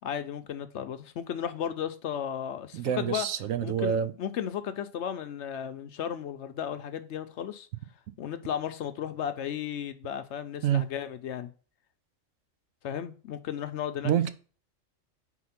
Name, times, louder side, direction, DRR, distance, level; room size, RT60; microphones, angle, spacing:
voice 1, 0.0-3.3 3.6-7.7 8.2-11.5 12.8-14.1, left 9 dB, 65° left, 0.8 m, -34 dB
voice 2, 2.7-4.1 10.6-10.8 14.0-14.3, right 9 dB, 80° right, 1.0 m, -27 dB
4.6 x 4.1 x 5.7 m
omnidirectional pair, 1.4 m